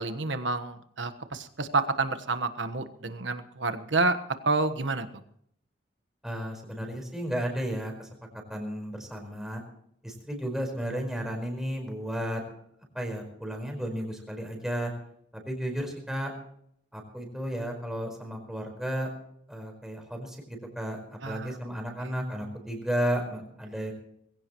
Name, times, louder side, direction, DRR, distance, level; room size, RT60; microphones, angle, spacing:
voice 1, 0.0-4.2 4.4-5.2 21.2-21.6, right 3 dB, 85° right, 10 dB, 1.4 m, -29 dB
voice 2, 6.2-8.1 8.5-9.6 10.0-12.4 12.9-14.9 15.4-16.3 16.9-19.1 19.5-23.9, equal, ahead, 1 dB, 4.8 m, -33 dB
21.5 x 16.5 x 3.1 m, 0.69 s
head